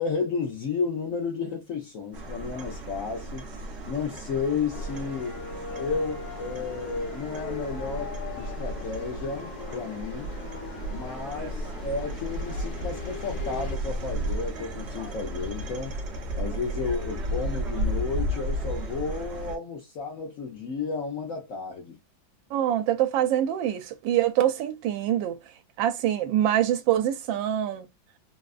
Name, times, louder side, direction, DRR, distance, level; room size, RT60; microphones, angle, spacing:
voice 1, 0.0-3.5 3.9-5.4 5.7-10.3 10.9-16.0 16.3-22.0, left 5 dB, 55° left, 1.0 m, -32 dB
sound 1, 2.1-19.6, right 1 dB, 60° right, 0.7 m, -34 dB
sound 2, 4.7-13.8, left 5 dB, 80° left, 1.5 m, -40 dB
voice 2, 22.5-25.4 25.8-27.9, right 11 dB, 80° right, 1.3 m, -25 dB
3.7 x 2.3 x 2.4 m
omnidirectional pair, 2.1 m